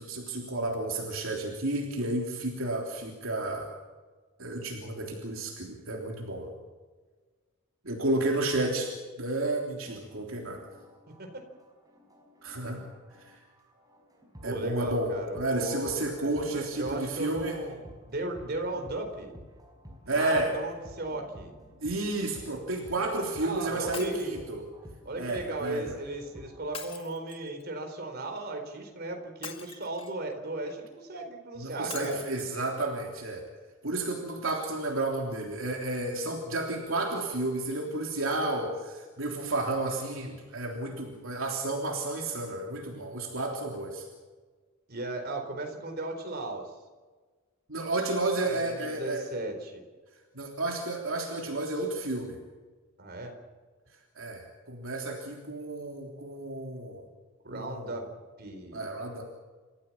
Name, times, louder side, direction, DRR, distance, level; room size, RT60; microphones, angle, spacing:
voice 1, 0.0-3.7 4.4-6.5 7.8-10.6 12.4-12.8 13.2-13.4 14.4-17.6 20.1-20.5 21.8-24.6 25.2-25.9 31.6-33.4 33.8-44.1 47.7-49.2 50.3-52.4 54.2-57.1 57.5-58.0 58.7-59.2, right 2 dB, 65° right, 1 dB, 3.4 m, -32 dB
sound 1, 9.8-26.6, equal, 15° right, 5.4 m, -51 dB
voice 2, 11.1-11.5 14.4-19.3 20.0-21.5 23.4-24.4 25.0-32.2 44.9-46.7 48.7-49.8 53.0-53.3 57.4-58.0 58.4-58.9, right 2 dB, 45° right, 4 dB, 4.2 m, -36 dB
Shatter, 23.9-24.4 26.7-27.6 29.4-30.2 31.9-32.5 33.1-33.2 33.5-33.6, left 6 dB, 25° left, 2.0 m, -43 dB
29.5 x 15.0 x 7.3 m, 1.4 s
head